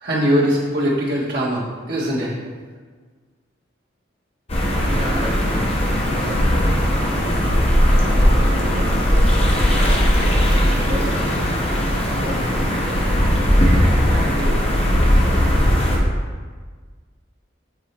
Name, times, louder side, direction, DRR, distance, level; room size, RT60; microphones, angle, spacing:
voice 1, 0.0-2.3, equal, 50° right, -6 dB, 1.5 m, -21 dB
sound 1, 4.5-16.0, equal, 30° left, 0.8 m, -18 dB
voice 2, 4.8-7.1 7.9-11.6 12.2-13.1 13.6-15.4, equal, 35° right, -5 dB, 0.7 m, -33 dB
7.4 x 4.0 x 3.3 m, 1.5 s
head